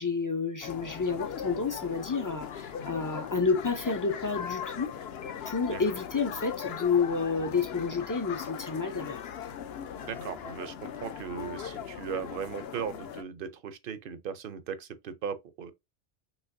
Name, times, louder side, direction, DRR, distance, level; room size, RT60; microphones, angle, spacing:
voice 1, 0.0-4.9 5.5-9.2, left 5 dB, 25° left, 0.4 m, -30 dB
sound 1, 0.6-13.2, left 8 dB, 65° left, 0.8 m, -39 dB
voice 2, 10.0-15.7, right 7 dB, 55° right, 0.8 m, -38 dB
6.3 x 2.9 x 2.6 m
omnidirectional pair, 1.2 m